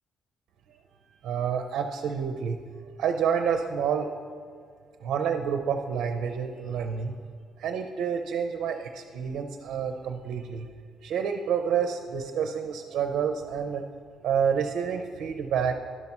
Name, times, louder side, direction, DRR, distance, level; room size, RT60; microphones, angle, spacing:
voice 1, 1.2-2.6 3.0-4.1 5.0-7.1 7.6-10.7 11.0-13.8 14.2-15.7, right 7 dB, 65° right, 4 dB, 0.6 m, -28 dB
11.0 x 5.5 x 5.9 m, 2.1 s
cardioid pair, 175°, 0 cm